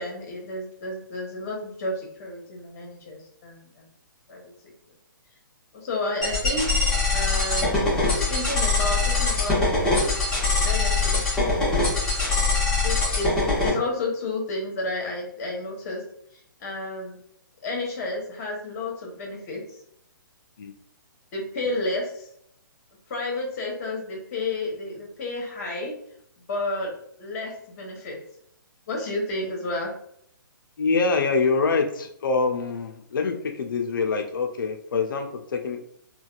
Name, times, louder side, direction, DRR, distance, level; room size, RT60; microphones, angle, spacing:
voice 1, 0.0-3.8 4.3-4.7 5.7-6.7 7.1-7.8 8.1-10.1 10.4-11.2 12.8-13.3 13.6-16.0 16.6-17.2 17.6-19.8 21.3-22.3 23.1-25.9 26.5-26.9 27.2-28.2 28.9-29.9, left 2 dB, 45° left, 0 dB, 1.2 m, -31 dB
sound 1, 6.2-13.7, left 3 dB, 5° left, 0.9 m, -23 dB
voice 2, 30.8-35.8, left 4 dB, 70° left, 5 dB, 0.5 m, -25 dB
4.0 x 2.3 x 2.4 m, 0.69 s
hypercardioid pair, 145°, 11 cm